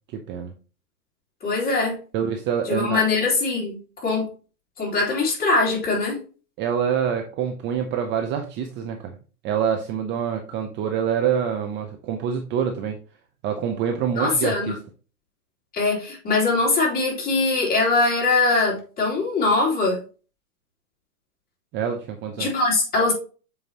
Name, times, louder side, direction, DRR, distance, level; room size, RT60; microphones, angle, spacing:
voice 1, 0.1-0.5 2.1-3.0 6.6-9.1 9.4-13.0 13.4-14.8 21.7-22.5, right 8 dB, 25° right, 0.7 m, -26 dB
voice 2, 1.4-2.0 2.7-4.3 4.8-6.2 14.2-14.7 15.7-20.0 22.4-23.1, left 3 dB, 20° left, 3.2 m, -22 dB
7.6 x 4.7 x 2.9 m
hypercardioid pair, 120°, 45 cm